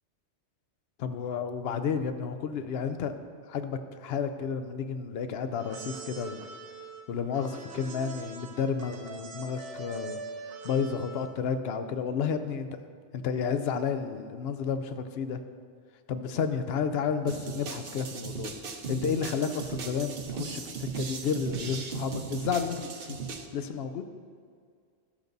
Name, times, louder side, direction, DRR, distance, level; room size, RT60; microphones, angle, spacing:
voice 1, 1.0-3.1 3.5-6.5 7.1-10.2 10.6-12.8 13.1-15.4 16.1-18.5 18.9-23.2 23.5-24.1, left 6 dB, 60° left, 9 dB, 0.8 m, -31 dB
sound 1, 5.5-11.4, right 3 dB, 70° right, 1.2 m, -43 dB
sound 2, 17.3-23.5, right 5 dB, 55° right, 0.9 m, -37 dB
13.0 x 6.6 x 4.0 m, 2.2 s
omnidirectional pair, 1.3 m